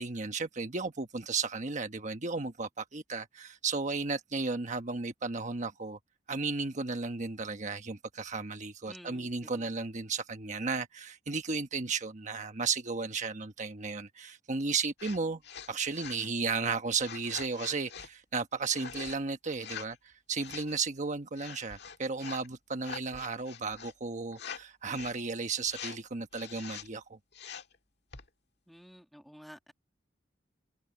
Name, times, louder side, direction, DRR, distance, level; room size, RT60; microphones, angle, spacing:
voice 1, 0.0-6.0 6.3-15.4 15.7-27.2, right 4 dB, 40° right, 1.2 m, -34 dB
voice 2, 8.9-9.8 28.7-29.7, equal, ahead, 1.9 m, -52 dB
sound 1, 15.0-15.2 15.4-16.3 17.0-18.1 18.6-19.2 19.5-20.0 20.4-20.7 21.4-22.5 22.8-23.9 24.3-24.6 24.9-25.2 25.7-26.0 26.3-26.9 27.3-27.8 28.1-28.3, left 7 dB, 65° left, 1.8 m, -44 dB
head